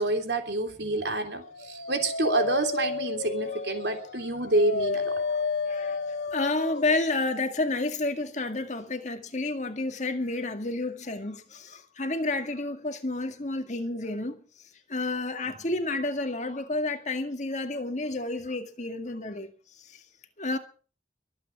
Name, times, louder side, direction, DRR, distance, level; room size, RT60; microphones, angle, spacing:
voice 1, 0.0-5.1, right 2 dB, 70° right, 3.5 m, -28 dB
Dog, 1.3-6.9, left 4 dB, 70° left, 0.9 m, -31 dB
voice 2, 5.3-6.0 6.3-14.4 14.9-19.5 20.4-20.6, left 2 dB, 40° left, 1.9 m, -30 dB
23.0 x 8.9 x 6.0 m
head